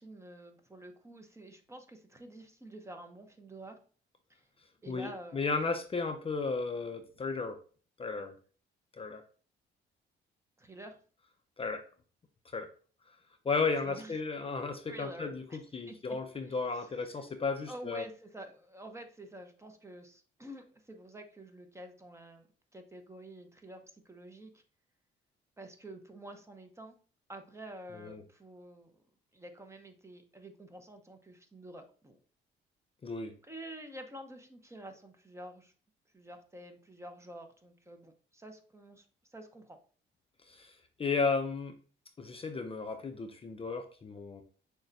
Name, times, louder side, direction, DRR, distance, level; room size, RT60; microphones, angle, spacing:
voice 1, 0.0-3.8 4.3-4.5 4.8-5.4 10.6-11.0 13.8-14.2 14.9-15.6 15.9-16.0 16.5-16.9 17.7-22.5 22.7-24.6 25.6-26.9 27.3-29.0 29.3-32.2 33.4-35.7 36.1-39.1 39.3-39.8, right 1 dB, 15° right, 6 dB, 0.6 m, -48 dB
voice 2, 4.9-7.6 8.0-8.3 9.0-9.2 11.6-11.8 12.5-12.7 13.4-18.0 27.9-28.2 33.0-33.3 40.5-41.7 42.2-44.4, left 4 dB, 30° left, 6 dB, 0.5 m, -34 dB
6.2 x 2.2 x 2.7 m, 0.40 s
cardioid pair, 90°, 20 cm